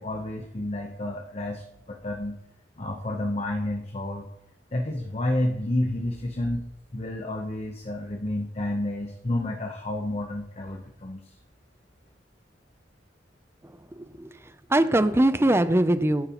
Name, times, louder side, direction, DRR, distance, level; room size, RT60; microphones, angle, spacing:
voice 1, 0.0-2.4 2.8-4.3 4.7-11.3, left 1 dB, 35° left, 2 dB, 0.9 m, -30 dB
voice 2, 13.9-14.3 14.7-16.3, right 1 dB, 15° right, 12 dB, 0.5 m, -21 dB
12.5 x 11.0 x 3.0 m, 0.79 s
head